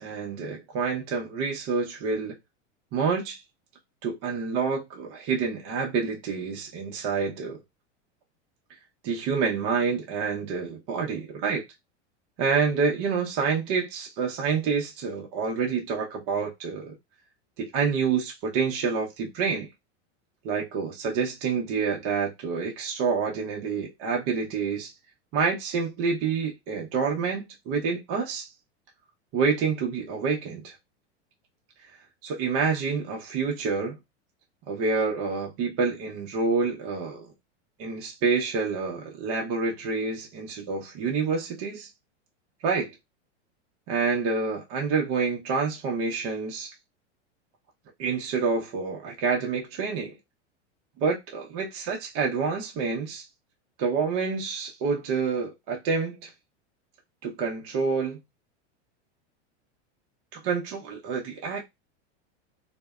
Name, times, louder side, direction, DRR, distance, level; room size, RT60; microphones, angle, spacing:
voice 1, 0.0-2.3 2.9-3.4 4.0-7.6 9.0-11.6 12.4-16.9 17.6-19.7 20.4-24.9 25.3-28.5 29.3-30.7 32.2-34.0 34.7-37.3 37.8-41.9 42.6-42.9 43.9-46.7 48.0-50.1 51.0-53.2 53.8-56.3 57.2-58.2 60.3-61.6, right 5 dB, 40° right, 0.7 m, -28 dB
2.6 x 2.1 x 2.3 m
supercardioid pair, 130°, 35 cm